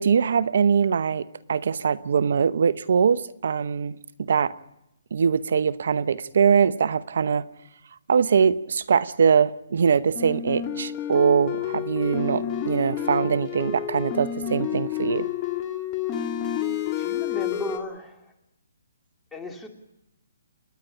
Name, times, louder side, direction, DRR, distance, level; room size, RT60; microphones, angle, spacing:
voice 1, 0.0-4.0 4.3-4.5 5.1-7.4 8.1-15.3, right 6 dB, 60° right, 0.9 m, -22 dB
sound 1, 10.1-17.8, left 10 dB, 25° left, 2.4 m, -29 dB
voice 2, 16.9-18.3 19.3-19.7, left 2 dB, 10° left, 2.7 m, -35 dB
29.5 x 10.5 x 9.8 m
hypercardioid pair, 145°, 0 cm